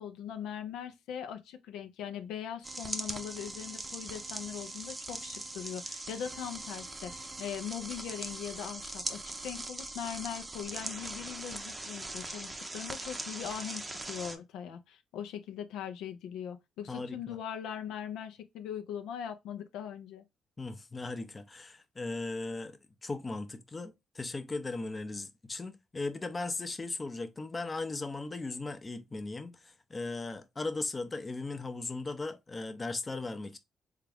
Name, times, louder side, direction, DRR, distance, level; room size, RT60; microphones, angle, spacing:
voice 1, 0.0-20.2, left 9 dB, 90° left, 0.5 m, -40 dB
sound 1, 2.6-14.4, right 2 dB, 20° right, 0.6 m, -41 dB
voice 2, 16.9-17.4 20.6-33.6, left 3 dB, 25° left, 0.6 m, -38 dB
3.6 x 2.3 x 3.4 m
cardioid pair, 90°, 0 cm